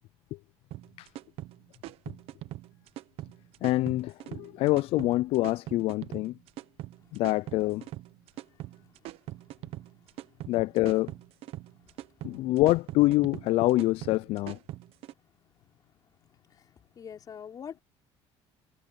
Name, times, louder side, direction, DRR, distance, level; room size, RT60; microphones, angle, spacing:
sound 1, 0.7-15.1, right 15 dB, 65° right, 0.9 m, -42 dB
voice 1, 3.6-6.4 7.1-7.8 10.5-11.1 12.2-14.6, left 18 dB, 65° left, 0.4 m, -26 dB
voice 2, 16.9-17.8, left 8 dB, 35° left, 4.9 m, -43 dB
cardioid pair, 145°, 11 cm